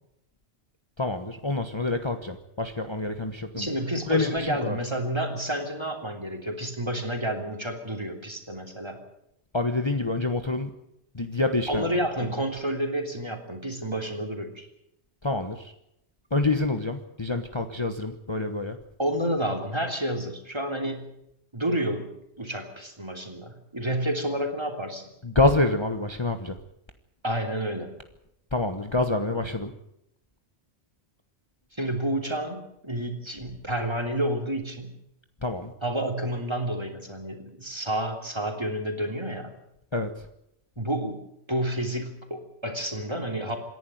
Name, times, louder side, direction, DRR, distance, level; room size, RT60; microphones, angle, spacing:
voice 1, 1.0-3.7 4.1-4.8 9.5-10.7 11.1-11.9 15.2-15.7 16.3-18.8 25.2-26.6 28.5-29.7 35.4-35.7 39.9-40.1, left 2 dB, 25° left, 7 dB, 1.3 m, -27 dB
voice 2, 3.5-9.0 11.7-14.7 19.0-21.1 21.5-25.1 27.2-27.9 31.7-34.9 35.8-39.5 40.8-43.6, right 1 dB, 25° right, 4 dB, 3.2 m, -30 dB
27.0 x 11.0 x 9.3 m, 0.80 s
omnidirectional pair, 1.1 m